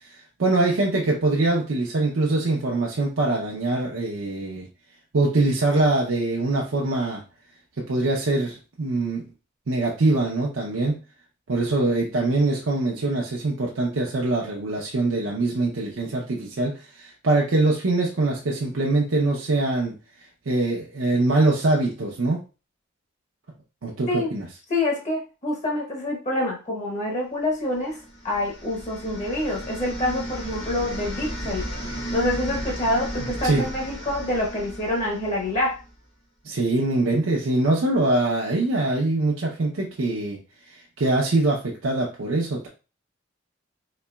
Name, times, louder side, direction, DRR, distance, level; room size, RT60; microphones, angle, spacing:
voice 1, 0.4-4.7 5.1-7.2 7.8-9.2 9.7-11.0 11.5-19.9 20.5-22.4 23.8-24.5 33.2-33.7 36.4-40.4 40.7-42.7, right 2 dB, 70° right, -3 dB, 0.7 m, -23 dB
voice 2, 24.7-31.7 32.1-35.8, left 1 dB, 35° left, -1 dB, 0.9 m, -26 dB
sound 1, 27.9-35.9, equal, 70° left, 1.4 m, -34 dB
4.1 x 2.9 x 2.2 m, 0.32 s
head